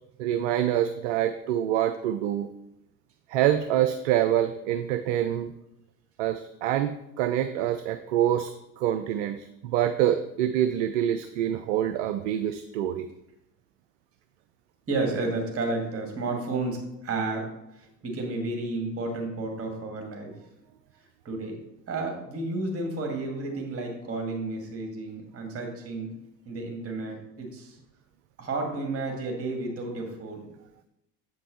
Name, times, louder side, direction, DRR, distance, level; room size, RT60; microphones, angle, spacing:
voice 1, 0.2-2.5 3.3-5.5 6.2-8.5 8.8-13.1, right 11 dB, 50° right, 9 dB, 0.5 m, -26 dB
voice 2, 14.9-17.5 17.8-20.3 21.2-21.6 21.9-26.1 26.5-27.7 28.4-30.4, right 3 dB, 30° right, 3 dB, 2.2 m, -31 dB
7.8 x 5.4 x 4.2 m, 0.85 s
figure-of-eight pair, 75°, 49 cm